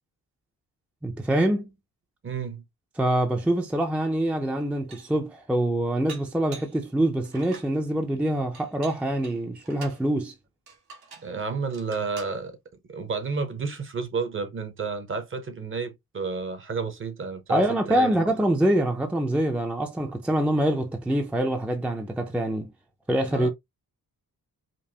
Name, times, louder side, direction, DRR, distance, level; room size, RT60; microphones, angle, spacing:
voice 1, 1.0-1.7 3.0-10.3 17.5-22.7 23.1-23.5, right 1 dB, 5° right, 0.4 m, -25 dB
voice 2, 2.2-2.6 11.2-12.6 12.9-18.1 23.3-23.5, right 4 dB, 35° right, 0.7 m, -31 dB
Dishes pots and pans, 4.0-4.1 4.6-5.2 6.1-6.8 7.2-7.7 8.5-10.0 10.7-11.3 11.7-12.4, right 5 dB, 80° right, 1.5 m, -46 dB
5.2 x 2.0 x 2.7 m
wide cardioid pair, 175°, 38 cm